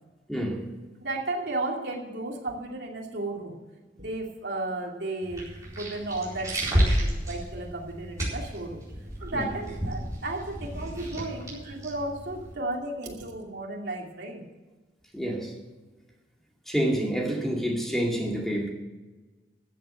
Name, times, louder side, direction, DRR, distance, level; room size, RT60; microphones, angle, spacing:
voice 1, 0.3-0.6 9.3-9.4 15.1-15.5 16.7-18.7, equal, ahead, 0 dB, 2.2 m, -28 dB
voice 2, 1.0-3.6 3.9-5.4 5.8-8.8 9.2-14.5, right 2 dB, 65° right, -1 dB, 2.7 m, -34 dB
sound 1, 5.2-12.5, equal, 15° right, 4.3 m, -31 dB
13.5 x 7.8 x 7.9 m, 1.2 s
head